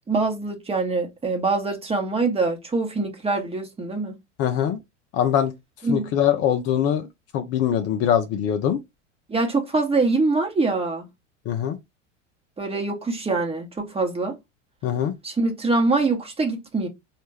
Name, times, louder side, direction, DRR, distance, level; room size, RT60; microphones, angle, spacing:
voice 1, 0.1-4.1 5.8-6.1 9.3-11.1 12.6-14.4 15.2-16.9, right 3 dB, 15° right, 1.1 m, -24 dB
voice 2, 4.4-4.8 5.1-5.5 5.9-7.1 7.3-8.8 11.5-11.8 14.8-15.1, left 9 dB, 40° left, 0.6 m, -22 dB
4.2 x 2.4 x 3.2 m
hypercardioid pair, 85°, 38 cm